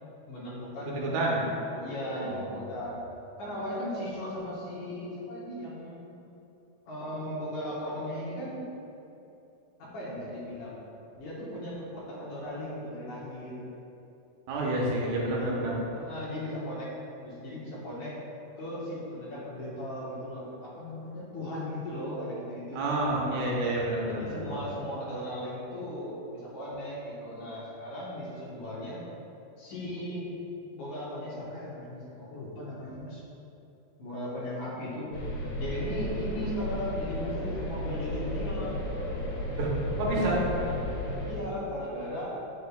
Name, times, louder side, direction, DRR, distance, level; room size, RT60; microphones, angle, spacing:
voice 1, 0.3-3.0 3.4-6.3 6.9-8.6 9.8-10.8 11.1-13.7 15.4-18.2 18.6-23.1 24.1-29.0 29.6-30.3 30.7-33.2 34.0-35.1 35.6-38.8 40.6-42.4, left 1 dB, 65° left, -7 dB, 2.3 m, -37 dB
voice 2, 1.0-1.4 2.2-2.4 14.5-15.8 22.7-24.6 39.6-39.7 40.0-40.4, right 2 dB, 80° right, -4 dB, 2.6 m, -29 dB
sound 1, 35.1-41.3, left 1 dB, 85° left, 2.9 m, -34 dB
6.7 x 6.4 x 2.2 m, 2.9 s
omnidirectional pair, 4.7 m